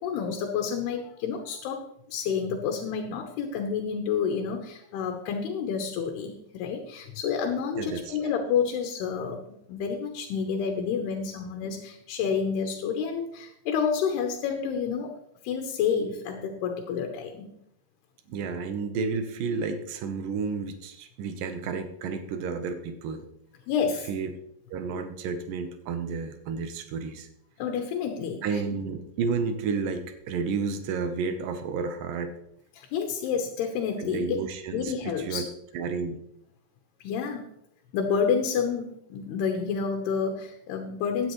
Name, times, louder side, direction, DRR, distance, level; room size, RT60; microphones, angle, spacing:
voice 1, 0.0-1.8 2.1-15.1 15.4-17.5 23.7-24.1 27.6-28.4 32.7-34.4 34.7-35.4 37.0-37.5 37.9-41.3, left 6 dB, 85° left, 3 dB, 3.1 m, -29 dB
voice 2, 7.8-8.3 18.3-23.3 24.1-24.3 24.7-27.3 28.4-32.4 34.0-35.5 35.7-36.2, right 5 dB, 70° right, 8 dB, 2.4 m, -31 dB
16.0 x 9.8 x 3.1 m, 0.77 s
omnidirectional pair, 4.5 m